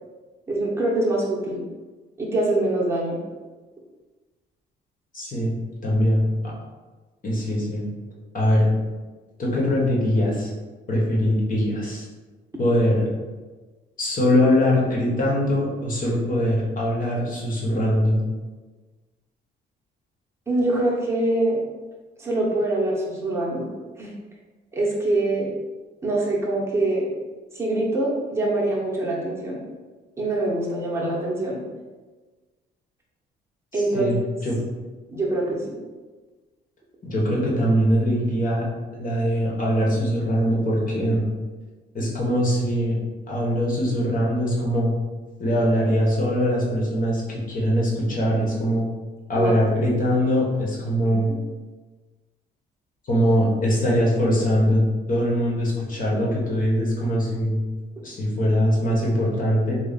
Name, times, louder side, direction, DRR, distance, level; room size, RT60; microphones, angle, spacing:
voice 1, 0.5-1.6 2.2-3.2 20.5-21.6 22.2-23.7 24.0-24.1 24.7-25.5 26.0-27.1 27.5-29.6 30.2-31.6 33.7-34.2 35.1-35.6 49.3-49.5 51.0-51.2 58.0-58.1, right 2 dB, 15° right, -5 dB, 1.0 m, -24 dB
voice 2, 5.1-5.5 5.8-6.5 7.2-7.9 8.3-8.7 9.4-10.5 10.9-12.0 12.6-13.0 14.0-18.2 33.7-34.6 37.0-38.7 39.0-41.2 41.9-43.0 43.3-44.9 45.4-48.8 49.3-51.3 53.0-54.8 55.1-57.6 58.0-59.8, equal, 45° left, -4 dB, 1.3 m, -22 dB
3.3 x 2.3 x 4.0 m, 1.3 s
cardioid pair, 90°, 20 cm